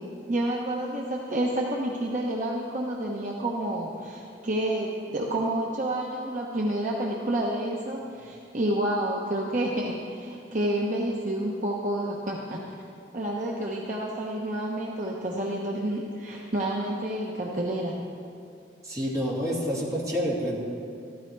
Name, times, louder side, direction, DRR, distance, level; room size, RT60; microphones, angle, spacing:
voice 1, 0.3-12.6 13.1-18.0, right 1 dB, 40° right, -3 dB, 1.0 m, -29 dB
voice 2, 18.8-20.6, equal, 20° right, -5 dB, 2.4 m, -28 dB
14.0 x 13.0 x 4.7 m, 2.5 s
head